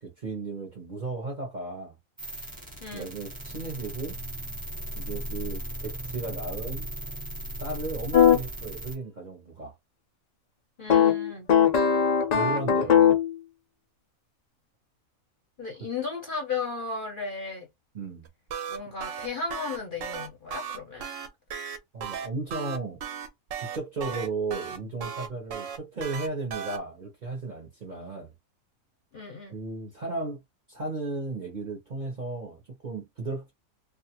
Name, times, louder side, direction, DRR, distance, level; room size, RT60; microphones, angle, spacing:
voice 1, 0.0-2.0 2.9-4.2 4.9-6.9 7.6-9.7 12.3-13.2 17.9-18.3 21.9-23.0 23.6-28.3 29.5-30.4 30.7-33.5, right 3 dB, 45° right, 0.7 m, -35 dB
sound 1, 2.2-8.9, right 1 dB, 15° right, 0.9 m, -37 dB
sound 2, 8.1-8.4 10.9-13.3, left 8 dB, 85° left, 0.3 m, -20 dB
voice 2, 10.8-11.5 15.6-17.7 18.7-21.1 29.1-29.5, left 4 dB, 50° left, 0.6 m, -35 dB
sound 3, 18.3-26.8, right 7 dB, 70° right, 0.9 m, -35 dB
2.4 x 2.3 x 2.8 m
omnidirectional pair, 1.5 m